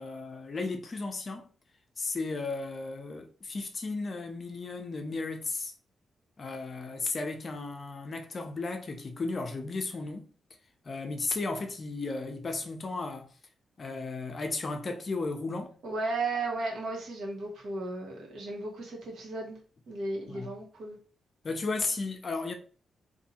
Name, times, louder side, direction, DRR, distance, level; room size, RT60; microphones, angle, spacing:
voice 1, 0.0-1.5 2.0-5.7 6.4-10.3 10.9-13.3 13.8-15.8 20.3-20.5 21.4-22.5, left 3 dB, 35° left, 0.5 m, -34 dB
voice 2, 15.8-19.6 19.9-21.0, right 2 dB, 85° right, 1.3 m, -35 dB
2.7 x 2.6 x 4.2 m
wide cardioid pair, 165°, 0 cm